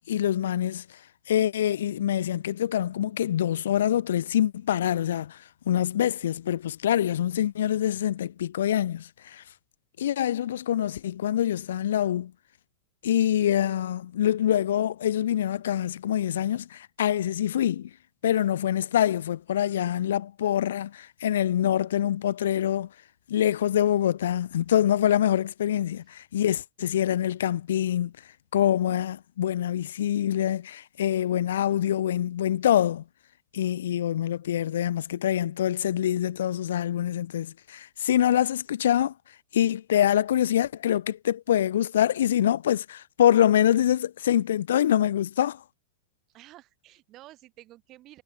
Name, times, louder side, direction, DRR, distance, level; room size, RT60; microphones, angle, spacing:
voice 1, 0.1-0.8 1.3-9.4 10.0-12.3 13.0-17.9 18.2-22.9 23.3-28.1 28.5-33.0 33.5-39.1 39.5-45.6, left 11 dB, 60° left, 0.3 m, -25 dB
voice 2, 46.3-48.2, right 16 dB, 35° right, 4.4 m, -51 dB
figure-of-eight pair, 90°, 0 cm